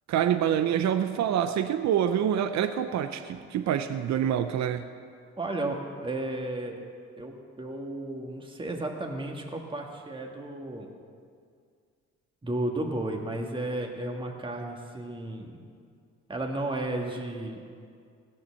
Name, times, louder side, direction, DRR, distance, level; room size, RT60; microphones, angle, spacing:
voice 1, 0.1-4.9, right 9 dB, 65° right, 9 dB, 0.7 m, -26 dB
voice 2, 5.4-6.8 7.2-10.9 12.4-15.6 16.3-17.6, right 1 dB, 15° right, 1 dB, 1.7 m, -33 dB
16.5 x 7.2 x 7.1 m, 2.2 s
cardioid pair, 90°, 30 cm